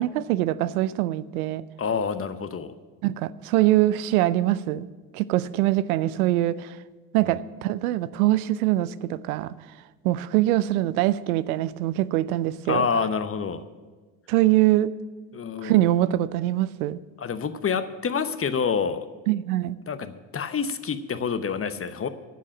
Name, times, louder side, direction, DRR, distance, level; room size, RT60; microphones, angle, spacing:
voice 1, 0.0-1.6 3.0-4.9 5.1-6.8 7.1-9.5 10.0-12.9 14.3-14.9 15.6-17.0 19.3-19.8, right 15 dB, 85° right, 17 dB, 0.5 m, -23 dB
voice 2, 1.8-2.7 7.2-7.3 12.7-13.6 15.3-15.8 17.2-19.1 19.9-22.1, left 6 dB, 30° left, 11 dB, 0.9 m, -27 dB
11.0 x 7.5 x 8.6 m, 1.4 s
hypercardioid pair, 55°, 42 cm